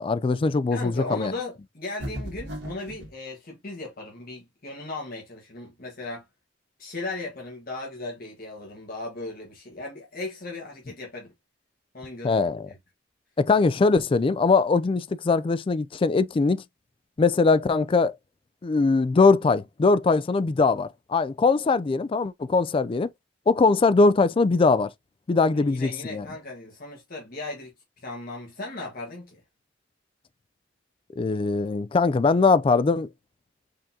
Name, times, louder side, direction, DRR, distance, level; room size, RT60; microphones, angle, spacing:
voice 1, 0.0-1.3 12.2-12.7 13.4-16.6 17.2-18.2 18.6-23.1 23.5-24.9 25.3-26.2 31.2-33.1, left 4 dB, 30° left, 0.3 m, -21 dB
voice 2, 0.7-6.2 6.8-11.3 11.9-12.5 25.5-27.7 28.0-29.4, left 2 dB, 50° left, 1.5 m, -37 dB
sound 1, 2.0-3.1, equal, 65° right, 2.3 m, -35 dB
5.1 x 3.7 x 2.7 m
head